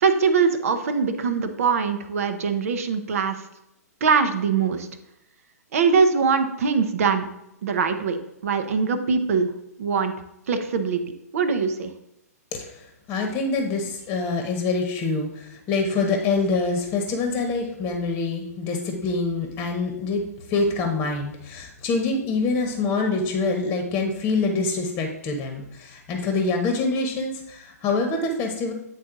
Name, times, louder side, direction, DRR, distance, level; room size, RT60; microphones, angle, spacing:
voice 1, 0.0-3.4 4.0-4.9 5.7-7.3 7.6-8.2 8.4-9.5 9.8-10.1 10.5-11.0 11.3-11.9, right 5 dB, 55° right, 9 dB, 0.8 m, -22 dB
voice 2, 12.5-12.8 13.1-20.2 20.5-28.7, left 3 dB, 25° left, 3 dB, 1.1 m, -25 dB
8.7 x 4.0 x 3.9 m, 0.85 s
figure-of-eight pair, 120°, 9 cm